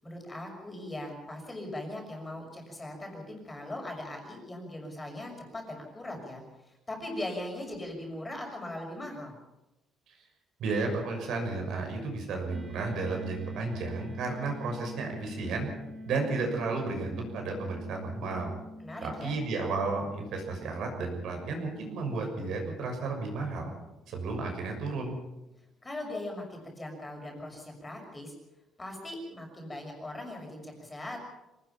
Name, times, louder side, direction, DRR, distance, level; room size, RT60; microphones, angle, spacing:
voice 1, 0.0-9.3 18.8-19.4 25.8-28.3 28.8-31.2, left 1 dB, 15° left, 1 dB, 6.0 m, -40 dB
voice 2, 10.6-15.7 16.1-18.5 19.0-23.7 24.1-25.2, right 3 dB, 70° right, 3 dB, 6.4 m, -33 dB
sound 1, 12.5-23.2, left 1 dB, 35° right, 5.7 m, -46 dB
25.5 x 19.0 x 5.9 m, 0.98 s
cardioid pair, 140°, 0 cm